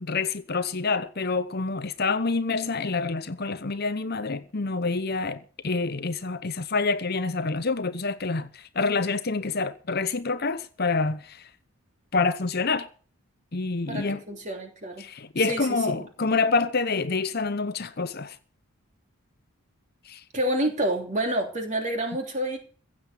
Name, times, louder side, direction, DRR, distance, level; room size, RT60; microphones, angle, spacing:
voice 1, 0.0-11.5 12.1-12.9 13.5-14.2 15.0-18.4 20.0-20.2, left 4 dB, 45° left, 0.8 m, -27 dB
voice 2, 13.9-15.0 15.5-15.7 15.9-16.0 20.3-22.6, right 1 dB, 30° right, 3.2 m, -28 dB
16.0 x 7.6 x 8.3 m
head